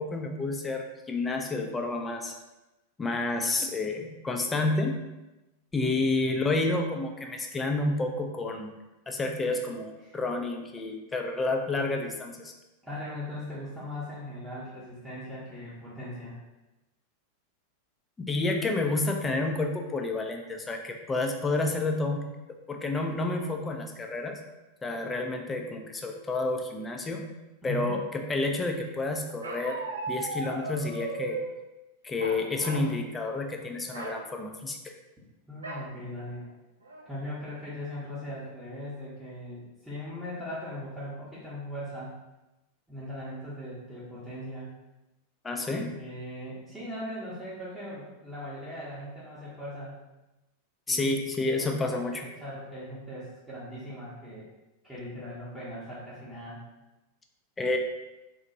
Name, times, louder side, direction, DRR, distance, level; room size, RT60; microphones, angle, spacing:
voice 1, 0.0-2.3 3.0-5.0 5.7-8.7 9.1-12.5 18.2-22.3 22.7-24.4 24.8-27.2 27.6-29.8 30.1-31.4 32.0-34.9 45.4-45.9 50.9-52.2 57.6-57.8, left 2 dB, 15° left, 3 dB, 0.3 m, -30 dB
voice 2, 12.8-16.4 27.6-28.0 35.5-36.4 37.1-42.1 42.9-44.7 45.6-45.7 46.0-49.9 50.9-51.0 51.5-54.5 54.8-56.6, equal, 5° right, -11 dB, 0.7 m, -39 dB
Bark, 29.4-31.5 32.2-32.9 33.3-33.5 33.9-34.2 35.6-35.9 36.4-36.5 36.9-37.3, right 3 dB, 75° right, 0.4 m, -36 dB
2.9 x 2.1 x 2.6 m, 1.0 s
figure-of-eight pair, 90°, 0 cm